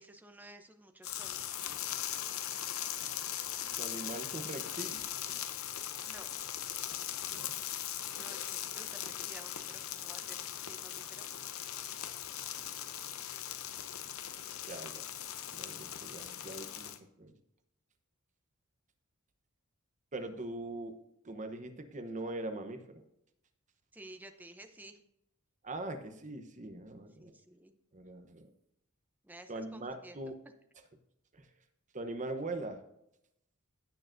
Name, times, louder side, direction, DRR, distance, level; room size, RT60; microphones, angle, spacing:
voice 1, 0.0-1.5 6.1-6.5 8.2-11.3 23.9-25.0 27.2-27.7 29.2-30.2, right 1 dB, 10° right, 7 dB, 0.7 m, -53 dB
sound 1, 1.0-17.0, left 11 dB, 70° left, 0.7 m, -40 dB
voice 2, 3.8-5.0 7.3-7.6 14.7-15.1 15.5-16.9 17.2-17.3 20.1-21.0 21.2-23.0 25.6-27.3 27.9-28.5 29.5-30.4 31.9-32.8, right 2 dB, 35° right, 7 dB, 0.9 m, -41 dB
16.0 x 6.6 x 2.6 m, 0.81 s
head